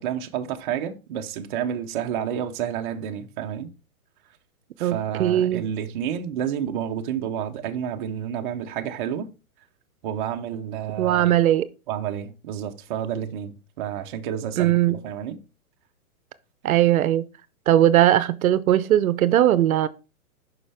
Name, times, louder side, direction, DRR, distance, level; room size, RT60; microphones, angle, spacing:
voice 1, 0.0-3.7 4.8-9.3 10.0-11.4 11.9-15.4, right 9 dB, 35° right, 0.7 m, -30 dB
voice 2, 4.8-5.6 11.0-11.7 14.6-15.0 16.6-17.2 17.7-19.9, right 12 dB, 70° right, 0.7 m, -19 dB
7.1 x 5.6 x 3.4 m
hypercardioid pair, 150°, 43 cm